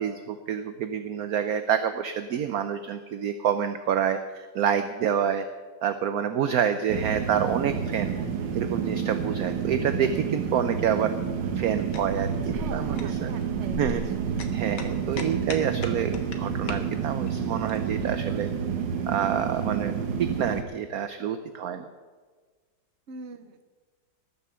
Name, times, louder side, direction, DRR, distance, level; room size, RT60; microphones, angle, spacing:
voice 1, 0.0-5.5 5.8-8.2 8.5-11.1 11.6-13.3 13.8-14.0 14.5-18.5 19.0-21.8, right 8 dB, 65° right, 9 dB, 1.0 m, -28 dB
sound 1, 6.9-20.6, right 7 dB, 80° right, 1.7 m, -29 dB
sound 2, 11.6-17.8, left 4 dB, 75° left, 1.9 m, -41 dB
voice 2, 12.6-14.3 23.1-23.6, right 4 dB, 45° right, 9 dB, 1.1 m, -43 dB
19.0 x 6.8 x 6.9 m, 1.5 s
omnidirectional pair, 2.0 m